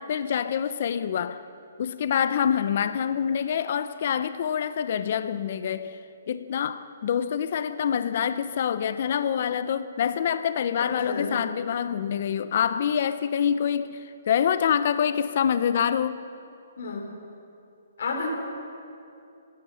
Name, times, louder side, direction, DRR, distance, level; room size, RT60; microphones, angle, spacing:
voice 1, 0.0-1.4 1.8-6.0 6.3-16.2, left 8 dB, 50° left, 12 dB, 0.8 m, -26 dB
voice 2, 11.0-11.4 16.8-17.1 18.0-18.3, left 4 dB, 65° left, 2 dB, 4.6 m, -30 dB
28.5 x 16.0 x 5.9 m, 2.6 s
hypercardioid pair, 160°, 0 cm